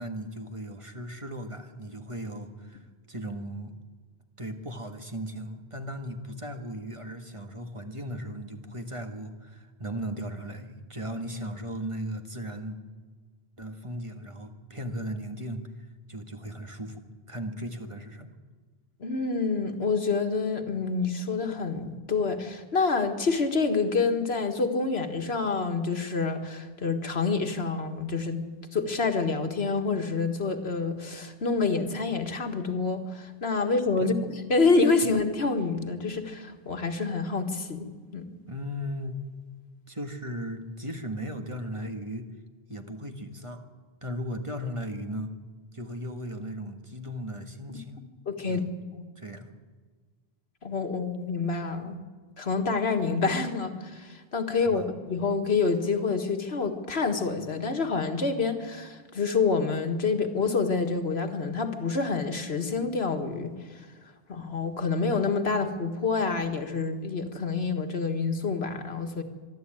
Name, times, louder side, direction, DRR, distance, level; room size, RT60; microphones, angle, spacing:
voice 1, 0.0-3.8 4.4-12.8 13.6-15.6 16.1-18.3 34.0-34.1 35.0-35.1 38.5-39.2 39.9-42.3 42.7-43.7 44.0-45.3 45.7-48.0 48.4-48.7 49.2-49.5 54.6-54.9, equal, 30° right, 6 dB, 1.6 m, -37 dB
voice 2, 19.0-28.5 28.7-34.1 34.5-37.9 38.1-38.2 47.7-47.8 48.3-48.6 48.9-49.0 50.6-52.0 52.4-63.5 64.3-69.2, left 4 dB, 85° left, 6 dB, 1.9 m, -27 dB
24.0 x 12.0 x 8.9 m, 1.5 s
omnidirectional pair, 1.0 m